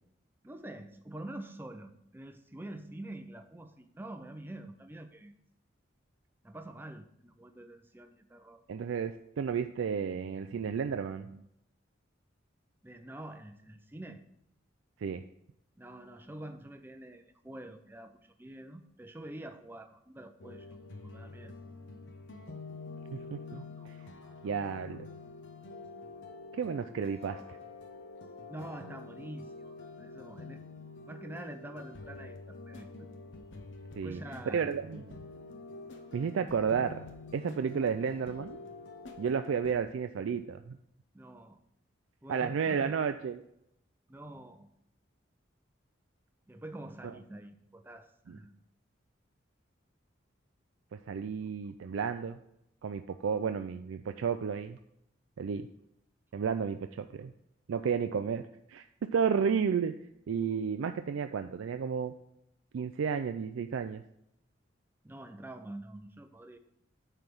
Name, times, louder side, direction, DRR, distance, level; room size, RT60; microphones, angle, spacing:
voice 1, 0.4-5.3 6.4-8.6 12.8-14.2 15.8-20.8 21.0-21.5 28.5-30.6 31.1-33.1 34.0-34.7 41.1-41.6 42.2-43.0 44.1-44.7 46.5-48.6 65.0-66.6, right 1 dB, 10° right, 7 dB, 0.5 m, -46 dB
voice 2, 8.7-11.4 15.0-15.2 23.1-24.1 24.4-25.0 26.5-27.6 34.0-34.2 34.5-35.0 36.1-37.1 37.3-38.6 39.2-40.8 42.3-43.4 47.0-47.1 48.3-48.4 50.9-52.4 52.8-54.8 55.4-55.7 56.3-57.3 57.7-58.4 58.7-58.8 59.1-59.9 60.3-62.1 62.7-64.0, right 6 dB, 85° right, 8 dB, 0.4 m, -32 dB
sound 1, 20.4-39.7, left 3 dB, 70° left, 0.8 m, -47 dB
9.2 x 3.4 x 6.0 m, 0.78 s
head